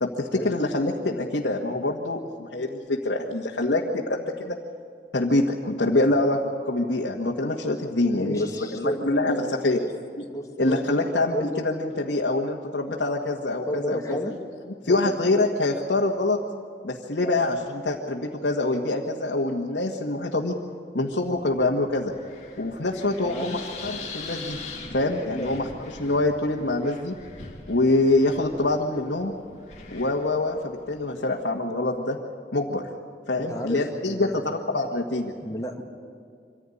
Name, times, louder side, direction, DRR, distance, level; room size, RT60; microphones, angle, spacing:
voice 1, 0.0-4.6 5.1-6.4 6.7-8.5 8.7-9.8 10.6-14.2 14.8-16.4 16.8-20.5 20.9-22.1 22.6-24.6 24.9-25.7 26.0-27.2 27.7-29.3 29.9-32.2 32.5-32.8 33.3-35.3, left 2 dB, 85° left, -2 dB, 1.7 m, -25 dB
voice 2, 8.1-9.5 9.8-9.9 10.3-11.0 11.3-11.6 13.6-14.3 14.8-15.2 17.2-17.3 23.2-23.6 25.3-25.5 33.4-34.5 35.4-35.8, equal, 20° left, 1 dB, 2.0 m, -32 dB
Wind, 21.1-31.2, left 3 dB, 40° left, 2.7 m, -42 dB
25.0 x 15.5 x 9.9 m, 2.3 s
head